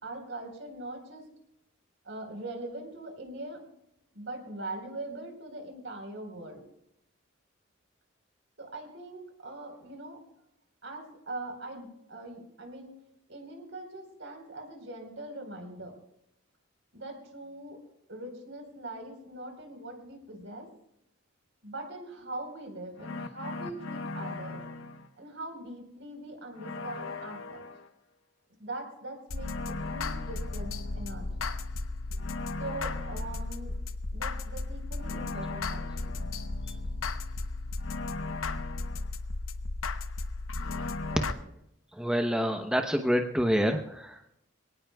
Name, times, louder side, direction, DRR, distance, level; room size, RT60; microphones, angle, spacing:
voice 1, 0.0-1.2 2.0-3.6 4.1-6.6 8.6-10.2 10.8-13.0 13.3-15.9 16.9-17.8 18.1-20.7 21.6-24.6 25.2-27.6 28.5-31.5 32.6-33.8 34.1-36.1 41.1-41.4 42.3-42.4, right 2 dB, 65° right, 3 dB, 4.3 m, -42 dB
sound 1, 23.0-25.1 26.6-27.9 29.3-41.3, left 3 dB, 80° left, 0.9 m, -35 dB
voice 2, 42.0-44.3, equal, 5° right, 4 dB, 0.8 m, -27 dB
26.5 x 18.0 x 2.3 m, 0.80 s
head